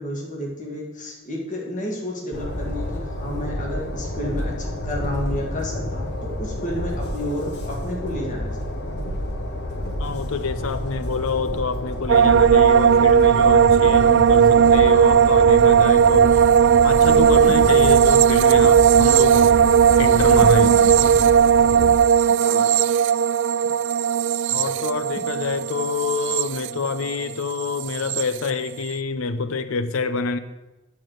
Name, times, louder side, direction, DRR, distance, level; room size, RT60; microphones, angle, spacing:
voice 1, 0.0-8.8 22.4-22.7, left 1 dB, 40° left, 2.0 m, -31 dB
Train, 2.3-21.9, left 1 dB, 55° left, 1.3 m, -29 dB
voice 2, 10.0-16.4 16.8-19.5 20.0-20.7 24.5-30.4, left 4 dB, 70° left, 0.7 m, -27 dB
sound 1, 12.1-27.3 27.6-28.2, right 8 dB, 60° right, 0.3 m, -16 dB
9.3 x 5.0 x 7.7 m
head